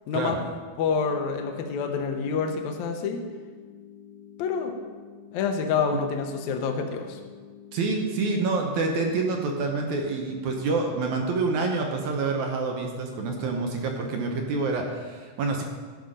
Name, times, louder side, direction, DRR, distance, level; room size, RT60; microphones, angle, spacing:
voice 1, 0.1-0.4 0.8-3.2 4.4-4.8 5.3-7.2, left 5 dB, 75° left, 3 dB, 1.8 m, -27 dB
sound 1, 0.9-10.9, left 8 dB, 90° right, 5.5 m, -48 dB
voice 2, 7.7-15.6, right 3 dB, 70° right, 2 dB, 1.9 m, -27 dB
12.0 x 5.7 x 5.1 m, 1.5 s
omnidirectional pair, 4.1 m